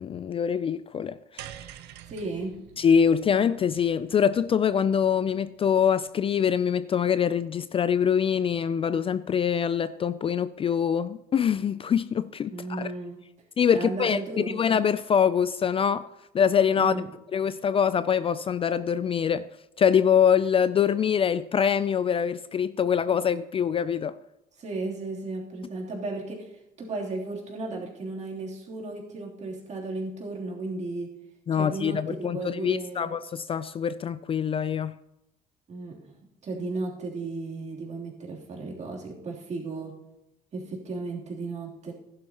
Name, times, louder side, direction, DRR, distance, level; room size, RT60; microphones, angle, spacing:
voice 1, 0.0-1.5 2.8-12.9 13.6-16.1 16.3-16.9 17.3-19.5 19.8-24.1 31.5-34.9, left 7 dB, 35° left, 0.4 m, -24 dB
sound 1, 1.4-5.8, right 11 dB, 85° right, 0.7 m, -47 dB
voice 2, 2.1-2.5 12.5-13.2 13.7-14.6 16.8-17.1 24.6-26.5 26.8-31.1 31.5-33.1 35.7-36.1 36.4-40.0 40.5-41.9, right 3 dB, 45° right, 3.2 m, -34 dB
15.0 x 11.0 x 2.9 m
cardioid pair, 110°, 17 cm